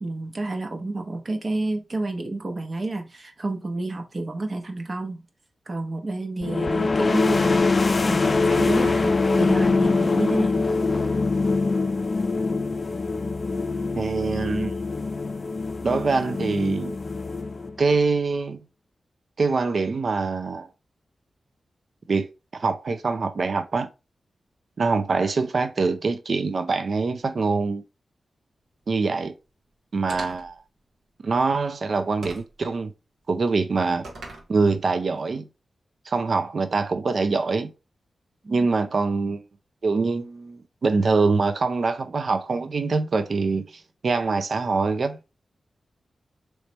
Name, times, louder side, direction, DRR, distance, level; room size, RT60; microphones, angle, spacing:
voice 1, 0.0-5.2 5.7-10.6 38.4-38.5, right 2 dB, 45° right, 1.0 m, -30 dB
sound 1, 6.4-18.0, left 3 dB, 45° left, 0.3 m, -23 dB
voice 2, 14.0-14.7 15.8-17.0 17.8-18.6 19.4-20.7 22.1-23.9 24.8-27.8 28.9-29.3 29.9-30.6 31.2-32.9 33.3-34.1 34.5-35.5 36.1-37.7 38.5-39.4 39.8-45.2, right 4 dB, 60° right, 0.5 m, -24 dB
sound 2, 30.1-30.6 32.2-32.6 34.0-34.5, right 2 dB, 90° right, 1.4 m, -39 dB
3.3 x 3.1 x 4.1 m
cardioid pair, 80°, 0 cm